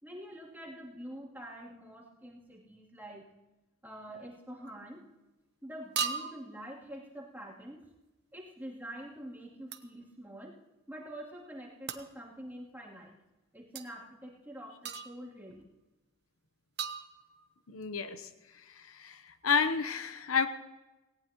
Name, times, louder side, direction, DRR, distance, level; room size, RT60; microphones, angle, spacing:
voice 1, 0.0-3.3 3.8-5.0 5.6-7.8 8.3-10.5 10.9-13.1 13.5-15.6, equal, 10° right, -4 dB, 2.8 m, -46 dB
sound 1, 4.6-4.9 6.0-6.6 9.7-9.9 11.9-12.1 13.8-13.9 14.8-15.4 16.8-17.6, right 6 dB, 50° right, 0.9 m, -37 dB
voice 2, 17.7-18.3 18.6-20.5, left 6 dB, 80° left, 10 dB, 0.9 m, -31 dB
18.0 x 18.0 x 3.0 m, 1.0 s
head